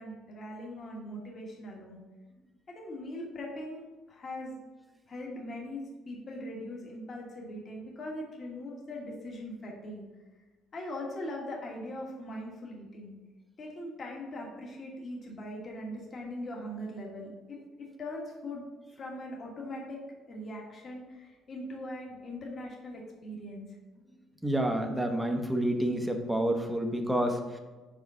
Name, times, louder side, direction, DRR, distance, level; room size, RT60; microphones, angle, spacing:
voice 1, 0.0-2.0 2.7-4.6 5.1-10.0 10.7-13.2 13.6-18.7 19.0-20.0 20.3-23.8, left 1 dB, 30° left, -1 dB, 1.3 m, -41 dB
voice 2, 24.4-27.6, right 1 dB, 5° right, 3 dB, 0.8 m, -29 dB
5.2 x 5.0 x 5.5 m, 1.3 s
cardioid pair, 155°, 0 cm